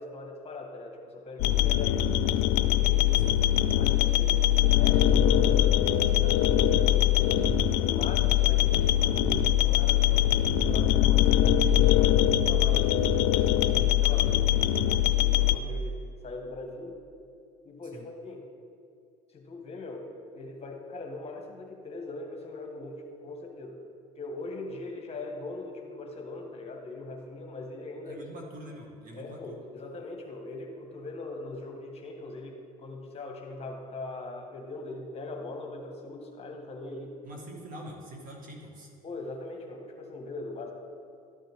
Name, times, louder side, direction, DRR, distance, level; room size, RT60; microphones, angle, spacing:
voice 1, 0.0-2.4 2.6-3.3 3.7-7.4 7.6-12.9 13.3-16.0 16.2-17.0 17.6-18.4 19.3-23.8 24.2-28.2 29.1-37.2 39.0-40.7, left 2 dB, 35° left, 2 dB, 1.5 m, -41 dB
sound 1, 1.4-15.6, left 11 dB, 75° left, 0.4 m, -22 dB
voice 2, 28.1-29.6 37.2-38.9, right 1 dB, 50° right, 0 dB, 2.0 m, -44 dB
12.5 x 7.3 x 3.6 m, 2.4 s
supercardioid pair, 90°, 18 cm